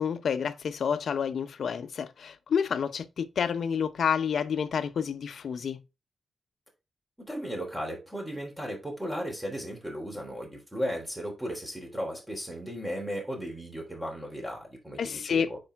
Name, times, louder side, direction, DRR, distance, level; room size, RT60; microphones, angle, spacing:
voice 1, 0.0-5.8 15.0-15.5, left 7 dB, 70° left, 0.8 m, -29 dB
voice 2, 7.3-15.6, equal, 10° right, 3.4 m, -35 dB
8.8 x 4.8 x 3.6 m
wide cardioid pair, 135°, 0 cm